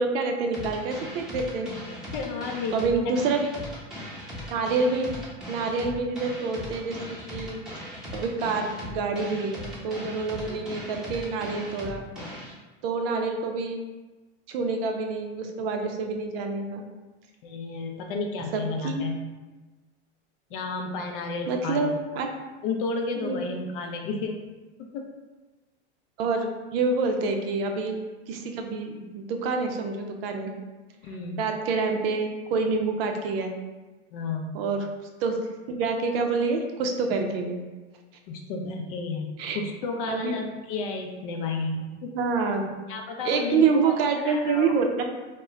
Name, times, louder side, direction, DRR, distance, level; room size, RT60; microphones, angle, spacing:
voice 1, 0.0-1.7 2.7-3.5 4.5-5.1 5.5-7.0 7.3-7.6 8.1-12.1 12.8-13.8 14.5-16.8 18.5-19.1 21.5-22.3 23.2-23.5 26.2-28.0 28.3-30.5 31.4-33.5 34.5-34.9 35.2-35.4 35.7-37.6 39.4-39.6 40.1-40.3 42.1-42.7 43.2-45.0, right 4 dB, 60° right, 4 dB, 0.5 m, -27 dB
sound 1, 0.5-12.5, left 1 dB, ahead, 0.8 m, -39 dB
voice 2, 2.1-3.1 10.4-10.6 17.4-19.2 20.5-21.9 22.6-24.5 24.8-25.1 31.0-31.5 34.1-34.5 38.3-42.1 42.9-43.9 44.2-44.7, left 4 dB, 55° left, 3 dB, 0.5 m, -32 dB
2.1 x 2.1 x 3.5 m, 1.2 s
hypercardioid pair, 115°, 34 cm